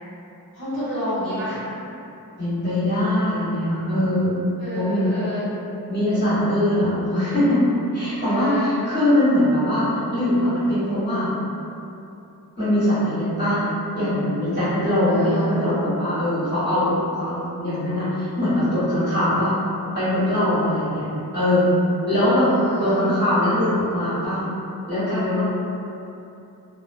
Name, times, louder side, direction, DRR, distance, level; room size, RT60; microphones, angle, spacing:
voice 1, 0.5-1.6 4.6-5.5 8.3-8.7 15.1-15.6 19.3-19.4 22.4-23.0, equal, 65° left, -15 dB, 1.1 m, -30 dB
voice 2, 2.4-4.4 4.7-5.1 5.9-7.6 7.9-11.3 12.6-13.6 13.9-19.5 19.9-21.0 21.3-21.7 22.1-22.5 22.8-24.4 24.9-25.4, left 1 dB, 30° left, -15 dB, 1.4 m, -21 dB
2.5 x 2.2 x 2.5 m, 2.8 s
wide cardioid pair, 45°, 37 cm